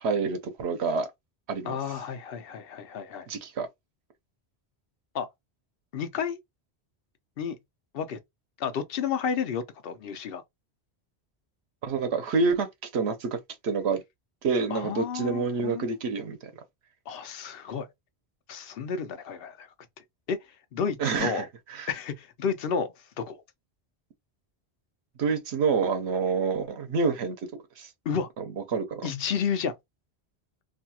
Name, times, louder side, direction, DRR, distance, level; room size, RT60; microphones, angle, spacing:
voice 1, 0.0-1.1 1.5-1.8 3.3-3.7 11.8-12.7 12.9-14.0 14.4-16.5 21.0-21.4 21.7-21.9 25.2-27.4 27.8-27.9 28.4-28.5 28.7-29.1, right 4 dB, 90° right, 1.0 m, -27 dB
voice 2, 1.6-3.3 5.1-5.3 5.9-6.4 7.4-7.6 7.9-8.2 8.6-10.4 14.7-15.9 17.1-17.9 18.5-19.7 20.3-20.4 20.7-21.4 21.9-23.4 28.1-28.3 29.0-29.7, left 6 dB, 65° left, 0.8 m, -31 dB
2.7 x 2.3 x 2.7 m
omnidirectional pair, 1.1 m